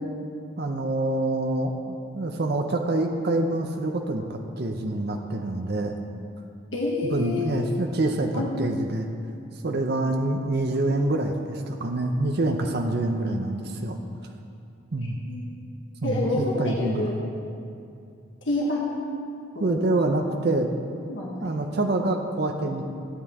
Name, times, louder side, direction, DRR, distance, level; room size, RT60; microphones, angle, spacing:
voice 1, 0.6-6.0 7.0-9.1 9.6-14.0 14.9-15.2 16.0-17.1 19.6-20.7 21.4-22.8, right 2 dB, 50° right, 3 dB, 0.7 m, -26 dB
voice 2, 6.7-7.4 8.3-8.5 10.8-11.0 15.2-15.4 16.0-17.3 18.4-18.9 19.5-19.8 21.1-21.9, left 2 dB, 60° left, -3 dB, 1.4 m, -28 dB
15.5 x 8.4 x 3.6 m, 2.5 s
head